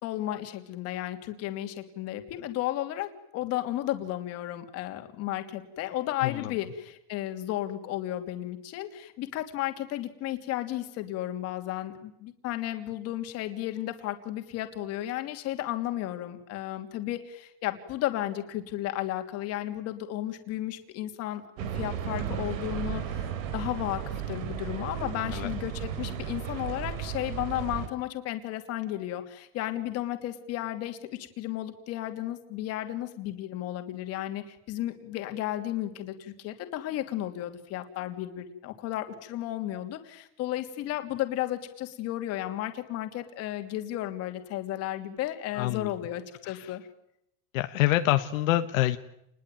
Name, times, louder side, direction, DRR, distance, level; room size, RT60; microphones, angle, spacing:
voice 1, 0.0-21.4 21.7-46.8, left 14 dB, 40° left, 7 dB, 2.9 m, -33 dB
voice 2, 6.2-6.5 25.3-25.5 45.5-45.9 46.4-46.7 47.5-49.0, left 15 dB, 80° left, 8 dB, 1.6 m, -26 dB
sound 1, 21.6-27.9, right 9 dB, 85° right, 3.8 m, -34 dB
29.5 x 20.5 x 9.2 m, 0.79 s
supercardioid pair, 165°, 39 cm